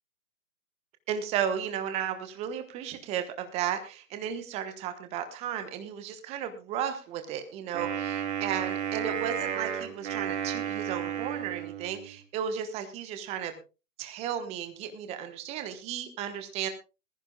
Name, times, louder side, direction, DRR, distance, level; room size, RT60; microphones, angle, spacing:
voice 1, 1.1-13.6 14.0-16.7, right 9 dB, 15° right, 9 dB, 1.1 m, -34 dB
Wind instrument woodwind instrument, 7.7-12.2, right 9 dB, 45° right, 2.7 m, -33 dB
20.5 x 14.5 x 2.3 m, 0.31 s
figure-of-eight pair, 130°, 46 cm